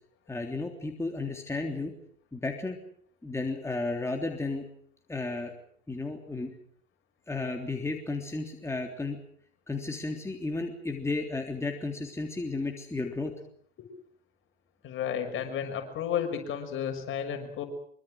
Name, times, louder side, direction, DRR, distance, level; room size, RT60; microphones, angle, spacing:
voice 1, 0.3-1.9 2.3-2.8 3.2-4.6 5.1-5.5 5.9-6.5 7.3-9.2 9.7-13.3, left 3 dB, 10° left, 2 dB, 3.5 m, -33 dB
voice 2, 14.8-17.6, left 8 dB, 40° left, 6 dB, 6.2 m, -32 dB
25.0 x 24.5 x 6.5 m, 0.62 s
figure-of-eight pair, 75°, 30 cm